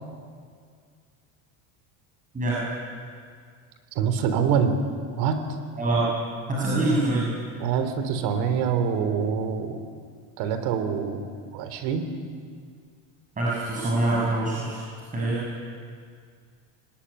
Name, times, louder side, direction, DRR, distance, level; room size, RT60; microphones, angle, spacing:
voice 1, 2.3-2.7 5.8-6.1 6.5-7.3 13.4-14.8 15.1-15.4, right 2 dB, 20° right, -5 dB, 6.4 m, -24 dB
voice 2, 4.0-4.8 5.2-5.4 7.6-9.8 10.4-11.3 11.5-12.1, right 7 dB, 65° right, 8 dB, 3.6 m, -25 dB
24.0 x 20.0 x 10.0 m, 2.1 s
cardioid pair, 150°, 42 cm